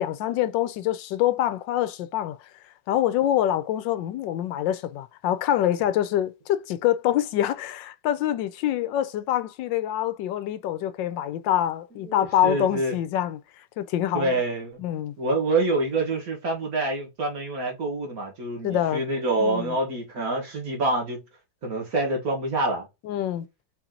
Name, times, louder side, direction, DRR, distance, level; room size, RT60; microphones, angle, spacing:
voice 1, 0.0-2.5 2.9-14.4 14.8-15.1 18.6-19.0 19.4-19.8 23.0-23.5, left 12 dB, 90° left, 1.3 m, -25 dB
voice 2, 12.4-12.9 14.1-14.8 15.2-21.2 21.6-22.9, right 2 dB, 50° right, 1.9 m, -26 dB
4.5 x 2.9 x 3.7 m
omnidirectional pair, 2.0 m